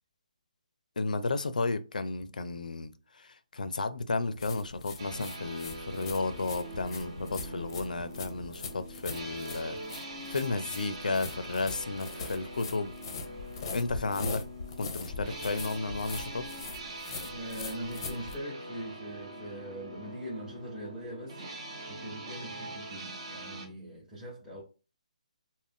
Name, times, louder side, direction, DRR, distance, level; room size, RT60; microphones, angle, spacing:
voice 1, 1.0-9.8 10.3-12.9 13.7-14.4 14.8-16.4, left 3 dB, 90° left, 0.4 m, -33 dB
sound 1, 4.4-18.4, left 4 dB, 30° left, 0.6 m, -42 dB
sound 2, 5.0-23.7, right 1 dB, 40° right, 0.9 m, -43 dB
voice 2, 17.2-24.6, equal, 5° right, 0.8 m, -42 dB
2.5 x 2.1 x 3.5 m
hypercardioid pair, 165°, 4 cm